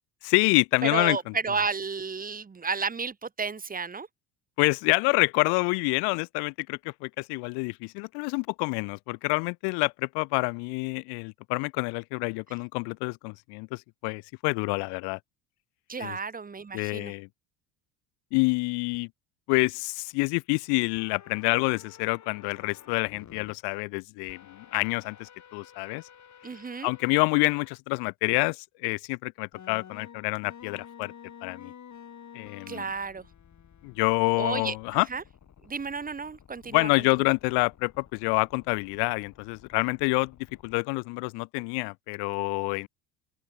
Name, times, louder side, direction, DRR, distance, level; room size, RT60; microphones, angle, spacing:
voice 1, 0.2-1.2 4.6-15.2 16.0-16.2 16.7-17.3 18.3-19.1 19.5-26.0 26.8-31.1 31.4-31.7 32.3-32.8 33.8-35.1 36.7-40.3 40.6-42.9, left 32 dB, 65° left, 0.7 m, -27 dB
voice 2, 0.8-4.1 15.9-17.1 26.4-26.9 32.7-33.3 34.4-34.8 35.1-35.2 35.6-36.9, right 5 dB, 20° right, 1.3 m, -32 dB
sound 1, 21.0-23.5 24.3-27.7 28.3-28.4 29.5-40.8, left 8 dB, 40° left, 7.6 m, -51 dB
open air
hypercardioid pair, 75°, 43 cm